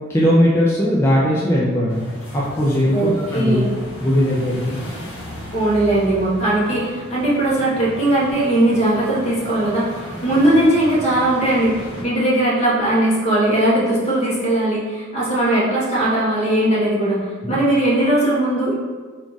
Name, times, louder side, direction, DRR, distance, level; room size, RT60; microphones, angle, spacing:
voice 1, 0.1-2.0 2.3-3.6 4.0-4.8 17.4-17.6, equal, 10° left, -7 dB, 0.4 m, -18 dB
sound 1, 1.9-12.0, equal, 60° left, 1.4 m, -35 dB
voice 2, 2.9-3.7 5.5-18.7, right 1 dB, 30° left, -6 dB, 1.0 m, -19 dB
3.6 x 2.4 x 3.9 m, 1.4 s
head